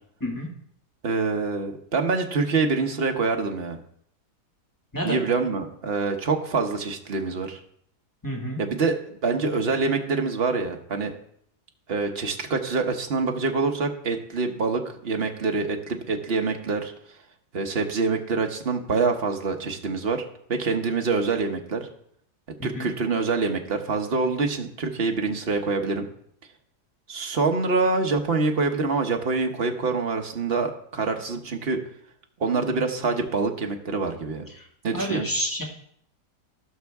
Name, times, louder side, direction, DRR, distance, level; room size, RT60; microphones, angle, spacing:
voice 1, 1.0-3.8 5.0-7.6 8.6-9.0 9.2-11.1 11.9-16.9 17.5-20.2 20.5-21.9 22.6-26.1 27.1-31.8 32.4-34.5 34.8-35.3, right 4 dB, 45° right, 4 dB, 1.1 m, -25 dB
voice 2, 8.2-8.6 22.6-22.9 34.5-34.7 34.9-35.6, equal, 10° left, -2 dB, 2.0 m, -29 dB
17.5 x 5.8 x 3.5 m, 0.68 s
omnidirectional pair, 1.7 m